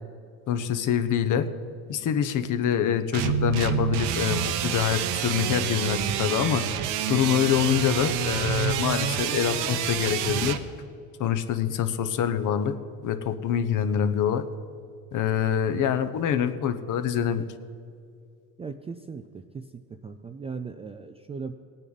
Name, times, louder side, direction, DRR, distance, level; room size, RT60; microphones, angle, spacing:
voice 1, 0.5-1.5 1.9-6.6 7.1-10.6 11.2-12.7 13.0-14.4 15.1-17.5, left 9 dB, 45° left, 10 dB, 0.9 m, -25 dB
sound 1, 3.1-10.6, right 8 dB, 70° right, 0.9 m, -28 dB
voice 2, 18.6-21.5, right 5 dB, 15° right, 7 dB, 0.3 m, -38 dB
18.5 x 9.1 x 4.1 m, 2.3 s
supercardioid pair, 110°, 42 cm